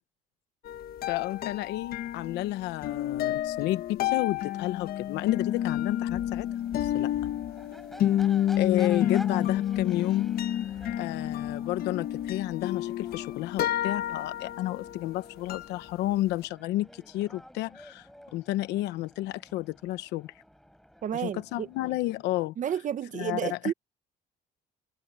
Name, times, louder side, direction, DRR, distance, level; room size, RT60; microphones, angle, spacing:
sound 1, 0.7-15.9 16.4-16.5, left 11 dB, 65° left, 1.2 m, -30 dB
voice 1, 1.1-6.5 6.8-7.1 8.6-10.3 11.0-20.3 21.1-22.5 23.1-23.7, left 16 dB, 90° left, 1.0 m, -31 dB
Crowd / Race car auto racing / Accelerating revving vroom, 5.3-22.4, equal, ahead, 5.7 m, -50 dB
voice 2, 21.0-21.7 22.6-23.7, right 9 dB, 50° right, 1.3 m, -31 dB
cardioid pair, 110°, 17 cm